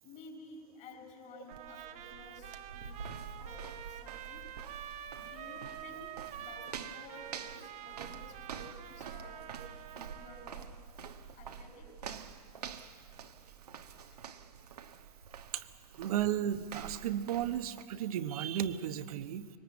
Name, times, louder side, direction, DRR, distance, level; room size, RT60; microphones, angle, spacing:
voice 1, 0.0-3.1 3.4-4.4 5.1-10.7 11.3-11.9 14.1-14.2, left 2 dB, 40° left, 3 dB, 5.7 m, -53 dB
Trumpet, 1.5-10.6, right 11 dB, 35° right, 1.1 m, -47 dB
sound 1, 1.5-17.8, right 7 dB, 85° right, 1.3 m, -47 dB
voice 2, 16.0-19.5, right 10 dB, 70° right, 11 dB, 1.1 m, -34 dB
23.0 x 19.5 x 8.4 m, 2.5 s
hypercardioid pair, 110°, 20 cm